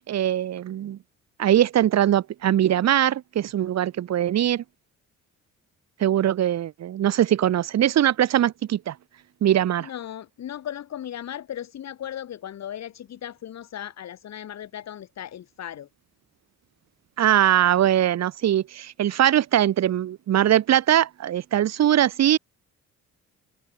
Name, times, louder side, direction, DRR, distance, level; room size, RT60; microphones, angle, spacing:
voice 1, 0.1-1.0 1.4-4.6 6.0-8.9 9.4-9.9 17.2-22.4, right 11 dB, 60° right, 1.2 m, -21 dB
voice 2, 9.8-15.9, left 10 dB, 60° left, 1.9 m, -37 dB
open air
cardioid pair, 90°, 30 cm